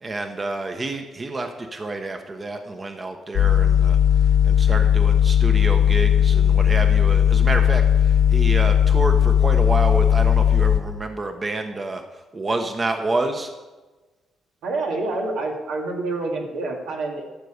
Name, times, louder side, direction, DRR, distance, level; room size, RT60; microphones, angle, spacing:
voice 1, 0.0-4.0 4.4-12.0 12.3-13.5, right 2 dB, 30° right, 6 dB, 1.0 m, -28 dB
sound 1, 3.3-10.8, left 9 dB, 85° left, 1.4 m, -17 dB
voice 2, 14.6-17.3, right 2 dB, 85° right, 0 dB, 2.1 m, -27 dB
14.0 x 6.8 x 5.1 m, 1.2 s
cardioid pair, 90°, 0 cm